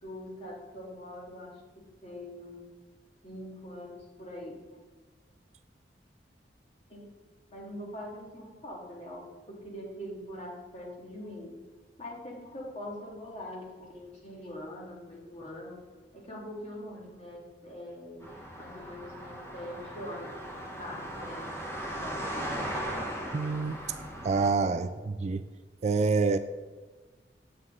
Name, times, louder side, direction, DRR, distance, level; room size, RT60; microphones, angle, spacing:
voice 1, 0.0-2.6 3.2-4.6 6.9-7.2 7.5-11.5 12.0-15.8 16.1-22.6, left 1 dB, 35° left, -3 dB, 2.1 m, -43 dB
sound 1, 18.2-24.5, right 1 dB, 15° left, 1.3 m, -38 dB
voice 2, 23.3-23.8 24.2-25.4 25.8-26.4, right 4 dB, 40° right, 11 dB, 0.3 m, -27 dB
8.0 x 7.4 x 3.7 m, 1.3 s
head